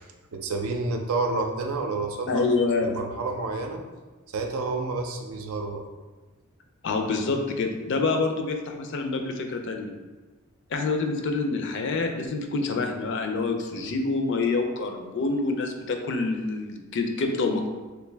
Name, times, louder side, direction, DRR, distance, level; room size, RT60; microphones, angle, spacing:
voice 1, 0.3-2.4 2.8-3.8 4.3-5.8 13.8-13.9, right 3 dB, 90° right, 3 dB, 0.5 m, -29 dB
voice 2, 2.3-2.9 6.8-9.9 10.7-17.7, left 3 dB, 60° left, 4 dB, 0.4 m, -27 dB
3.3 x 2.6 x 3.3 m, 1.2 s
head